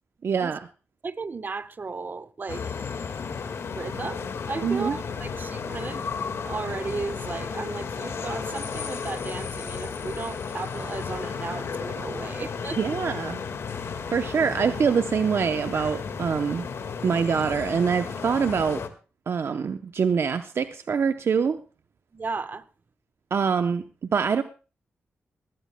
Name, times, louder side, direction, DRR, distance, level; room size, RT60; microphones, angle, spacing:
voice 1, 0.2-0.7 4.6-5.0 12.8-13.4 14.1-16.7 17.0-18.8 19.3-21.6 23.3-23.8 24.1-24.4, right 6 dB, 65° right, 0.7 m, -24 dB
voice 2, 1.0-2.6 3.7-12.8 22.1-22.6, right 4 dB, 45° right, 1.1 m, -35 dB
sound 1, 2.5-18.9, left 5 dB, 70° left, 1.8 m, -33 dB
19.5 x 16.5 x 2.2 m
cardioid pair, 65°, 5 cm